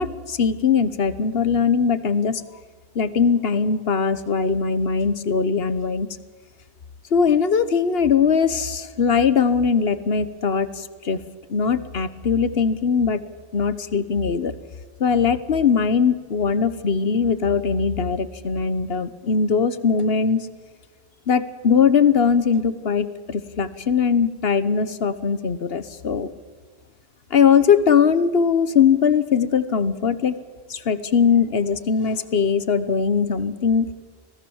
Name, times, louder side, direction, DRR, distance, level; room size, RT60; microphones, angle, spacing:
voice 1, 0.0-2.4 2.9-6.1 7.1-11.2 11.5-13.2 13.5-14.5 15.0-20.5 21.3-26.3 27.3-30.4 30.7-33.9, left 6 dB, 65° left, 14 dB, 1.3 m, -20 dB
25.0 x 17.5 x 7.2 m, 1.5 s
omnidirectional pair, 1.1 m